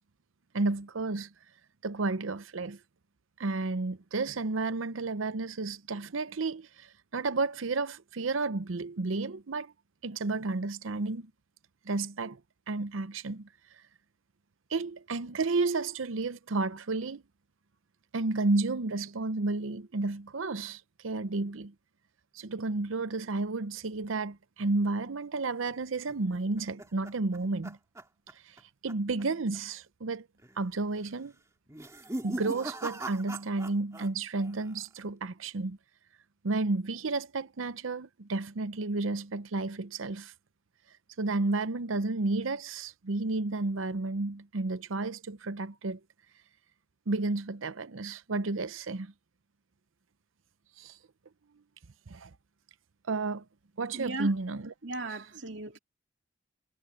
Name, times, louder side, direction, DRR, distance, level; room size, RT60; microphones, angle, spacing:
voice 1, 0.5-1.3 1.8-2.8 3.4-6.9 7.1-9.7 10.0-11.3 11.9-12.4 12.7-13.5 14.7-17.2 18.1-21.7 22.3-27.8 28.8-30.3 30.6-31.3 32.2-35.8 36.4-40.3 41.2-46.0 47.1-49.1 50.8-50.9 52.1-52.3 53.1-53.4 53.8-54.6, right 3 dB, 90° right, 0.7 m, -32 dB
sound 1, 26.1-28.6 28.9-29.2 29.5-29.6 30.4-30.8 31.7-34.1 34.4-34.9, right 1 dB, 15° right, 2.1 m, -40 dB
voice 2, 53.9-54.3 54.8-55.8, right 2 dB, 70° right, 2.4 m, -36 dB
head